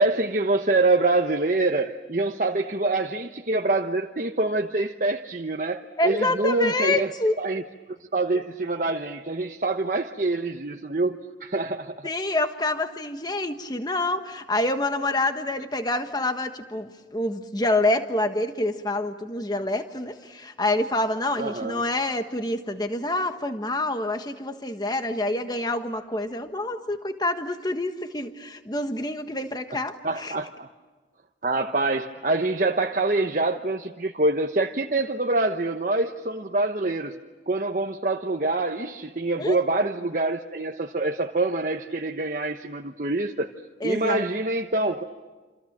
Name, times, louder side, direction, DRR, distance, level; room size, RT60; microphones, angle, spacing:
voice 1, 0.0-7.1 7.4-7.6 8.1-12.1 21.4-21.8 30.0-30.7 31.4-37.1 37.5-43.5 43.8-45.0, right 2 dB, 45° right, 1.0 m, -25 dB
voice 2, 6.0-7.4 12.0-30.3 39.4-39.6 43.8-44.2, left 2 dB, 20° left, 1.4 m, -27 dB
28.0 x 27.5 x 7.5 m
head